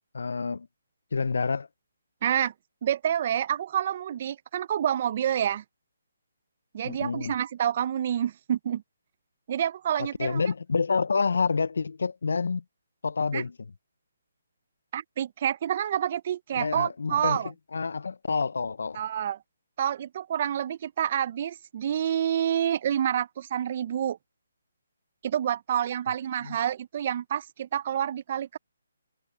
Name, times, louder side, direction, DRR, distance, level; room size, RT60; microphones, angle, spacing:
voice 1, 0.1-0.7 1.1-1.7 6.8-7.3 10.2-12.6 13.0-13.5 16.5-17.4 17.7-19.0 26.4-26.6, left 4 dB, 75° left, 0.3 m, -28 dB
voice 2, 2.2-2.5 2.8-5.6 6.7-8.8 9.5-10.4 13.3-13.4 14.9-17.5 18.9-19.4 19.8-24.2 25.2-28.6, right 10 dB, 40° right, 0.5 m, -28 dB
hypercardioid pair, 165°, 0 cm